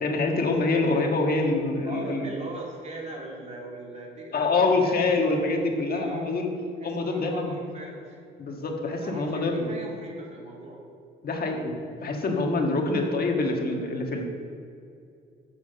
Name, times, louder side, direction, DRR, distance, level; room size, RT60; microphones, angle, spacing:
voice 1, 0.0-2.3 4.3-6.5 6.8-7.5 8.4-9.7 11.2-14.2, left 3 dB, 50° left, 2 dB, 1.5 m, -25 dB
voice 2, 1.8-5.2 5.9-6.3 6.8-8.2 9.0-10.8, right 2 dB, 35° right, -2 dB, 2.5 m, -40 dB
7.2 x 7.1 x 6.8 m, 2.5 s
cardioid pair, 90°, 20 cm